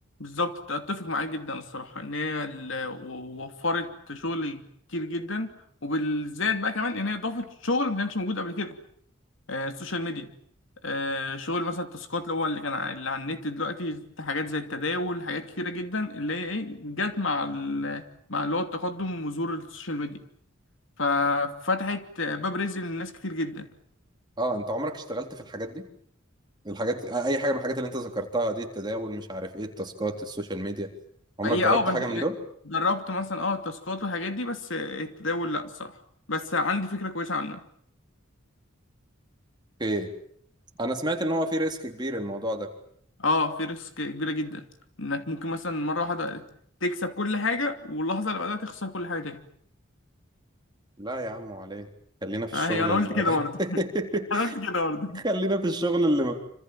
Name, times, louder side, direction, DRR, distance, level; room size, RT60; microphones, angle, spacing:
voice 1, 0.2-4.6 4.9-5.5 5.8-8.8 9.5-10.3 10.8-20.2 21.0-23.7 31.4-32.3 32.7-36.0 36.3-37.6 43.2-44.6 45.0-46.5 46.8-49.4 52.5-53.8 54.3-55.2, left 2 dB, 70° left, 8 dB, 2.7 m, -29 dB
voice 2, 24.4-25.9 26.6-30.9 31.4-32.3 39.8-40.1 40.8-42.7 51.0-51.9 52.2-54.5 55.1-56.3, right 1 dB, 20° right, 3 dB, 3.6 m, -29 dB
26.5 x 26.5 x 7.5 m, 0.65 s
head